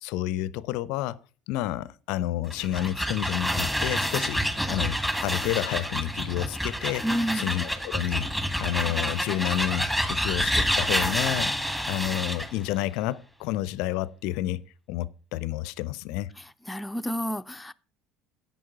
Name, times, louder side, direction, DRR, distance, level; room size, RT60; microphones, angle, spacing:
voice 1, 0.0-1.2 1.5-7.1 7.3-11.5 11.9-14.6 14.9-16.3, left 14 dB, 60° left, 0.5 m, -30 dB
sound 1, 2.4-12.5, equal, 5° right, 1.6 m, -28 dB
voice 2, 7.0-7.5 16.7-17.7, equal, 10° left, 0.5 m, -29 dB
11.0 x 7.9 x 5.7 m
figure-of-eight pair, 60°, 0 cm